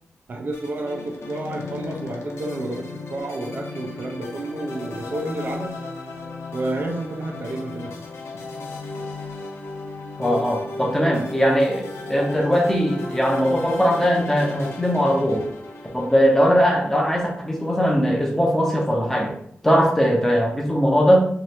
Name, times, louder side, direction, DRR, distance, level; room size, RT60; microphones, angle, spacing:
voice 1, 0.3-5.8 6.5-8.0, right 2 dB, 50° right, 2 dB, 0.4 m, -30 dB
sound 1, 0.5-17.9, left 3 dB, 85° left, 0.6 m, -35 dB
voice 2, 10.2-15.5 15.9-19.3 19.6-21.2, equal, 10° left, -1 dB, 0.6 m, -20 dB
2.9 x 2.4 x 3.1 m, 0.68 s
wide cardioid pair, 140°, 4 cm